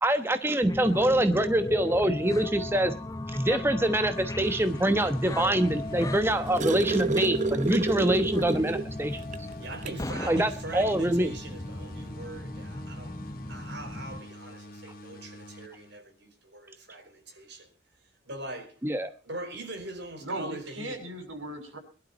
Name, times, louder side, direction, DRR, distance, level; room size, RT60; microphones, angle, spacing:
voice 1, 0.0-2.9 3.3-9.5 10.3-11.3 18.8-19.1, right 1 dB, 10° right, 1.1 m, -25 dB
sound 1, 0.6-14.2, left 1 dB, 15° left, 0.7 m, -36 dB
sound 2, 4.6-16.3, left 1 dB, 50° left, 2.1 m, -47 dB
sound 3, 6.0-8.9 9.3-9.4 9.8-10.0 11.2-11.3, right 3 dB, 40° right, 0.7 m, -29 dB
voice 2, 9.6-13.2 13.5-17.7 18.2-18.8 19.2-21.0, right 2 dB, 60° right, 5.1 m, -42 dB
voice 3, 20.2-21.8, right 1 dB, 90° right, 6.3 m, -37 dB
22.5 x 12.0 x 4.3 m
head